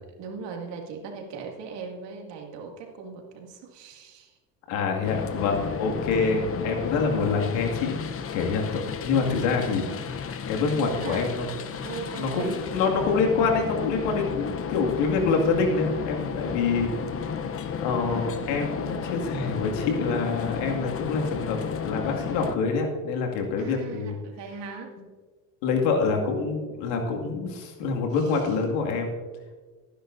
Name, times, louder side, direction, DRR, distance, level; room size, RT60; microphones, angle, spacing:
voice 1, 0.2-4.4 10.7-11.3 11.8-12.7 23.6-25.0 25.7-26.1 28.1-28.6, right 5 dB, 65° right, 1 dB, 2.3 m, -39 dB
voice 2, 4.7-9.9 10.5-11.5 12.2-17.4 17.8-24.1 25.6-29.1, left 4 dB, 75° left, 2 dB, 2.3 m, -26 dB
sound 1, 5.0-22.6, left 7 dB, 30° left, 0.8 m, -33 dB
18.5 x 10.0 x 2.6 m, 1.4 s
supercardioid pair, 90°, 45 cm